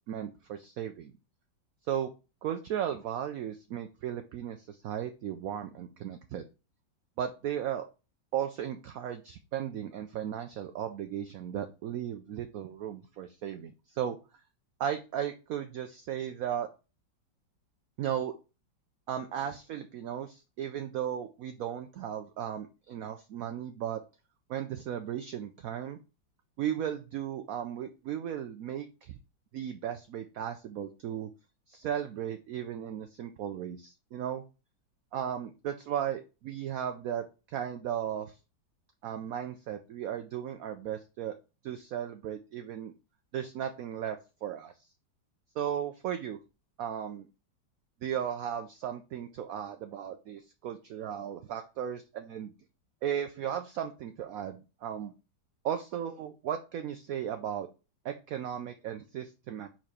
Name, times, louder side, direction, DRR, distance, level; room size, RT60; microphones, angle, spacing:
voice 1, 0.1-1.1 1.9-2.1 2.4-6.4 7.2-7.8 8.3-14.2 14.8-16.7 18.0-18.3 19.1-24.0 24.5-26.0 26.6-29.2 29.5-31.3 31.7-34.4 35.1-38.4 39.0-41.3 41.6-42.9 43.3-44.9 45.6-46.4 46.8-47.3 48.0-52.5 53.0-55.1 55.6-57.7 58.0-59.7, right 9 dB, 75° right, 7 dB, 0.8 m, -36 dB
4.9 x 4.5 x 4.3 m, 0.31 s
omnidirectional pair, 2.1 m